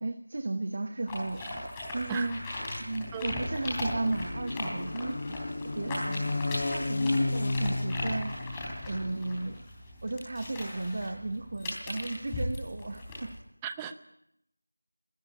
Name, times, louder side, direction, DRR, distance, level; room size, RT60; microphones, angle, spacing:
voice 1, 0.0-1.6 1.9-2.4 2.8-5.4 5.7-6.4 6.7-8.3 8.9-9.6 10.0-13.3, right 2 dB, 35° right, 9 dB, 1.1 m, -34 dB
sound 1, 1.1-13.3, left 1 dB, 10° left, 3.7 m, -38 dB
sound 2, 2.0-9.6, left 2 dB, 35° left, 1.4 m, -34 dB
voice 2, 13.6-13.9, right 8 dB, 10° right, 10 dB, 0.7 m, -36 dB
21.0 x 13.5 x 9.9 m, 0.79 s
figure-of-eight pair, 170°, 0 cm